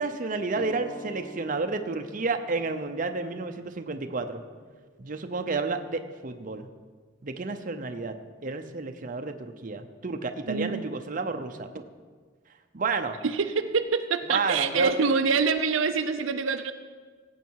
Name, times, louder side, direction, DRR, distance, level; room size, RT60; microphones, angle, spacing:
voice 1, 0.0-4.4 5.0-6.7 7.2-8.1 8.4-11.7 12.7-13.2 14.3-14.9, right 3 dB, 45° right, 7 dB, 0.7 m, -31 dB
sound 1, 0.6-5.7, equal, 40° left, 1.3 m, -47 dB
voice 2, 10.5-10.8 13.2-16.7, right 5 dB, 80° right, 8 dB, 0.6 m, -25 dB
17.5 x 8.2 x 4.7 m, 1.5 s
head